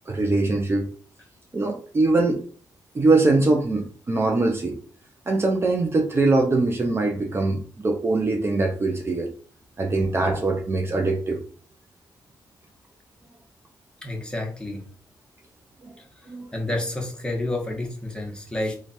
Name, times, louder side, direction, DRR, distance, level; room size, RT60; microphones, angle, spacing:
voice 1, 0.1-0.9 1.5-2.4 2.9-4.8 5.3-9.3 9.8-11.4 15.8-15.9 16.3-16.5, right 2 dB, 30° right, 2 dB, 0.6 m, -22 dB
voice 2, 14.0-14.8 16.5-18.8, left 2 dB, 10° left, 0 dB, 1.1 m, -29 dB
3.3 x 2.4 x 4.2 m, 0.44 s
cardioid pair, 90°, 8 cm